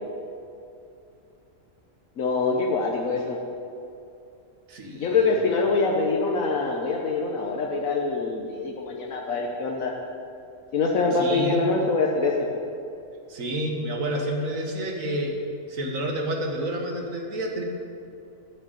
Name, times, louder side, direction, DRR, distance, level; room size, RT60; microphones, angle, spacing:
voice 1, 2.2-3.4 4.9-9.9 10.7-12.3, left 4 dB, 85° left, -1 dB, 1.4 m, -24 dB
voice 2, 4.7-5.3 11.1-11.7 13.3-15.4 15.7-17.6, right 1 dB, 85° right, 0 dB, 1.9 m, -29 dB
10.5 x 6.5 x 9.0 m, 2.7 s
omnidirectional pair, 1.4 m